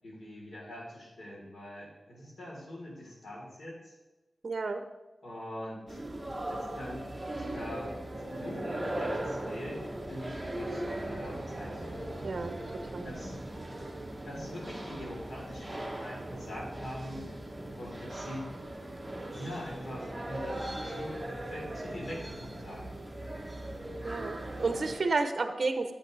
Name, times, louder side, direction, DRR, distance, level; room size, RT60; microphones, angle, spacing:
voice 1, 0.0-3.9 5.2-6.0 6.5-7.0 7.4-7.9 8.2-12.1 13.0-13.4 14.2-17.3 17.7-18.5 19.4-22.9, left 1 dB, 75° left, -4 dB, 3.6 m, -43 dB
voice 2, 4.4-4.8 12.2-12.6 12.9-13.1 24.0-25.9, right 3 dB, 55° right, 7 dB, 0.7 m, -31 dB
sound 1, 5.9-25.0, right 1 dB, 15° right, 1.1 m, -39 dB
10.0 x 8.6 x 3.3 m, 1.1 s
wide cardioid pair, 90°, 0 cm